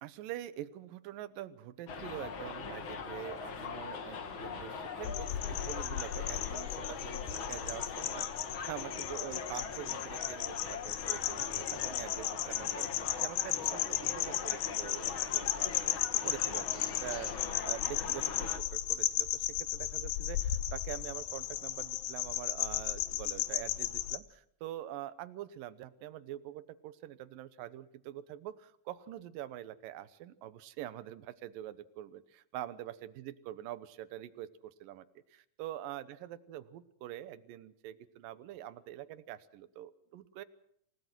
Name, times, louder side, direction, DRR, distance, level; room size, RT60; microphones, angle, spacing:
voice 1, 0.0-17.3 17.6-19.5 19.7-40.4, right 13 dB, 80° right, 13 dB, 2.7 m, -45 dB
Subway metro underground, 1.9-18.6, left 5 dB, 45° left, 2.1 m, -41 dB
sound 1, 5.0-24.2, left 13 dB, 85° left, 2.8 m, -35 dB
28.0 x 18.0 x 6.1 m, 0.70 s
omnidirectional pair, 4.0 m